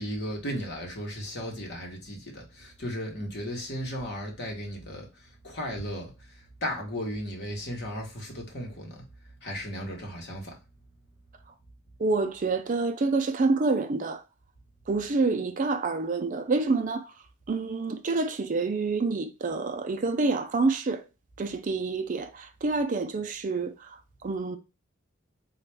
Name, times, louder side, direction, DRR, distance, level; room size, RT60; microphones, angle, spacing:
voice 1, 0.0-5.1 5.4-6.1 6.6-9.0 9.4-10.5, equal, 55° left, 1.2 m, -35 dB
voice 2, 12.0-14.2 14.9-17.1 17.5-21.0 21.4-24.6, right 3 dB, 40° right, 0.4 m, -27 dB
4.1 x 2.4 x 3.3 m
head